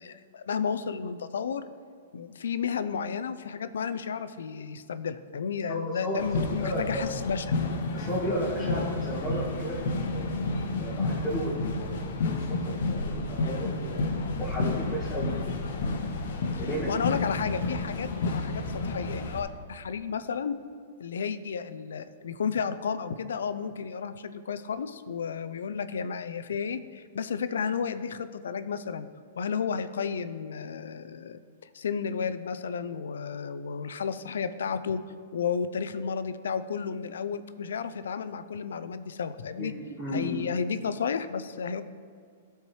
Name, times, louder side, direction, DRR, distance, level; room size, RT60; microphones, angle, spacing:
voice 1, 0.0-1.6 2.1-7.7 16.5-20.6 21.0-29.1 29.4-31.4 31.7-35.0 35.3-39.7 40.1-41.8, left 6 dB, 90° left, 12 dB, 0.4 m, -32 dB
voice 2, 5.7-6.2 6.6-7.1 7.9-10.4 10.8-14.1 14.4-15.3 16.6-16.9 39.5-40.4, equal, 5° left, -9 dB, 1.1 m, -34 dB
sound 1, 6.2-19.4, left 3 dB, 70° left, 0.8 m, -31 dB
12.0 x 4.6 x 3.2 m, 2.1 s
hypercardioid pair, 155°, 0 cm